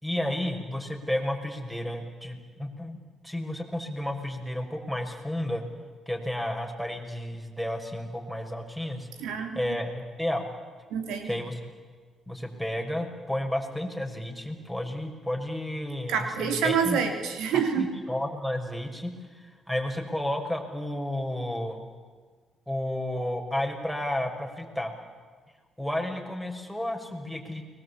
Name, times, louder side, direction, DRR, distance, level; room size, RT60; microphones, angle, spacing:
voice 1, 0.0-5.6 6.1-9.1 9.5-10.5 11.3-11.6 12.3-17.0 17.8-21.8 22.7-24.9 25.8-27.6, left 1 dB, ahead, 4 dB, 6.1 m, -32 dB
voice 2, 9.2-9.8 10.9-11.3 16.1-17.9, right 7 dB, 85° right, 6 dB, 3.4 m, -27 dB
29.5 x 22.0 x 8.7 m, 1.5 s
supercardioid pair, 70°, 0 cm